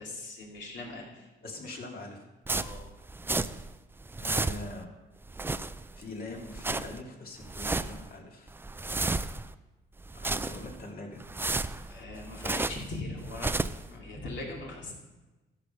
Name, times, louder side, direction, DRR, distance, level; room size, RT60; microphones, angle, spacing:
voice 1, 0.0-1.3 2.5-2.8 11.9-13.5 13.9-14.9, left 2 dB, 65° left, -2 dB, 2.9 m, -40 dB
voice 2, 1.4-2.2 4.2-4.9 6.0-8.5 10.1-11.2, left 2 dB, 50° left, 0 dB, 2.4 m, -42 dB
sound 1, 2.5-3.7 4.0-4.8 5.2-6.0 6.4-7.0 7.4-8.1 8.5-9.5 10.0-10.8 11.2-12.9 13.2-13.9, right 3 dB, 10° right, 0.3 m, -32 dB
13.0 x 5.3 x 5.7 m, 1.1 s
cardioid pair, 90°, 20 cm